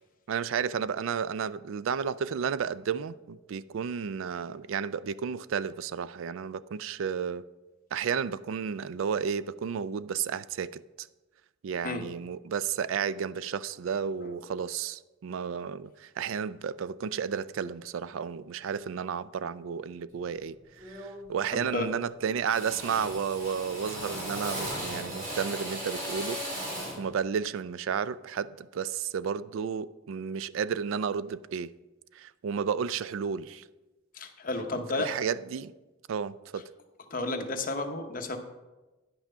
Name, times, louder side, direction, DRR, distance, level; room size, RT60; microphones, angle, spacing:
voice 1, 0.3-7.5 7.9-11.1 11.6-26.7 27.0-31.7 32.1-33.6 35.0-35.7 36.1-36.6, right 7 dB, 75° right, 0.3 m, -32 dB
Drill, 20.1-20.4 20.8-21.3 21.5-22.1 22.5-27.1, equal, 40° right, 3.1 m, -37 dB
voice 2, 21.5-21.9 34.1-35.1 37.1-38.4, left 2 dB, 45° left, 0.9 m, -32 dB
9.9 x 5.9 x 5.5 m
head